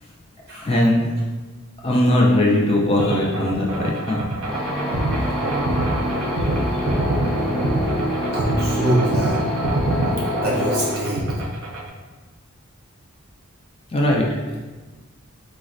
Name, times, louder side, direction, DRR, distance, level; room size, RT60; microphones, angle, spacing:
voice 1, 0.6-1.1 1.8-4.2 13.9-14.3, left 1 dB, 25° left, -2 dB, 0.3 m, -19 dB
sound 1, 3.0-11.9, right 1 dB, 65° right, 0.4 m, -25 dB
sound 2, 4.4-10.9, equal, 5° left, 0.7 m, -26 dB
voice 2, 8.3-9.4 10.3-11.4, right 1 dB, 45° right, -5 dB, 0.9 m, -24 dB
4.0 x 2.1 x 2.4 m, 1.3 s
head